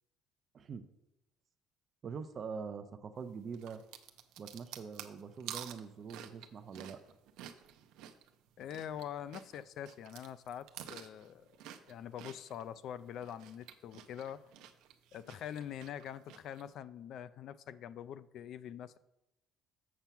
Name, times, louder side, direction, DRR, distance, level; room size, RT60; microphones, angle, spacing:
voice 1, 2.0-3.8 4.4-7.0, right 5 dB, 45° right, 0.7 m, -44 dB
sound 1, 3.5-9.0 9.3-12.6 13.1-16.6, right 10 dB, 80° right, 0.7 m, -50 dB
voice 2, 8.6-11.5 11.9-14.4 15.1-19.0, left 9 dB, 60° left, 0.4 m, -44 dB
7.4 x 4.4 x 6.9 m
supercardioid pair, 90°, 0 cm